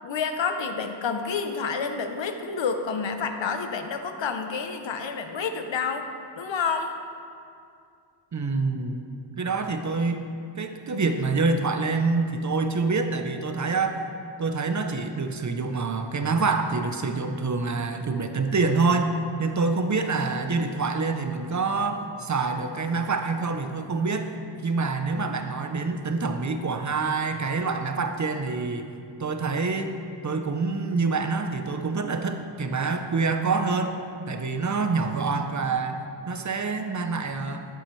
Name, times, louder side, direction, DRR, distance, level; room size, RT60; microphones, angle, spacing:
voice 1, 0.0-6.1 6.4-6.9, left 5 dB, 80° left, 6 dB, 0.7 m, -29 dB
voice 2, 8.3-9.0 9.4-10.3 10.6-14.0 14.4-19.1 19.4-24.3 24.6-28.9 29.2-29.9 30.2-34.0 34.3-37.6, right 4 dB, 40° right, 7 dB, 0.5 m, -26 dB
11.0 x 7.0 x 3.1 m, 2.4 s
wide cardioid pair, 90°, 44 cm